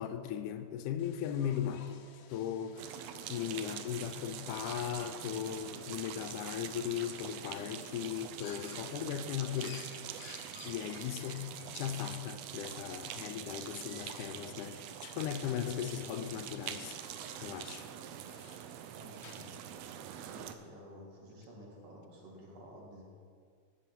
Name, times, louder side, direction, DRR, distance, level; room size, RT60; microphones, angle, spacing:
voice 1, 0.0-2.0 2.3-2.8 3.3-9.9 10.7-17.0 17.4-17.9 18.4-18.6, left 9 dB, 85° left, 9 dB, 2.2 m, -38 dB
sound 1, 1.0-19.8, left 6 dB, 70° left, 1.6 m, -58 dB
sound 2, 2.8-20.6, right 10 dB, 85° right, 1.4 m, -45 dB
voice 2, 18.9-19.8 20.3-23.0, equal, 60° right, -3 dB, 2.9 m, -52 dB
9.9 x 7.7 x 5.8 m, 2.1 s
omnidirectional pair, 3.5 m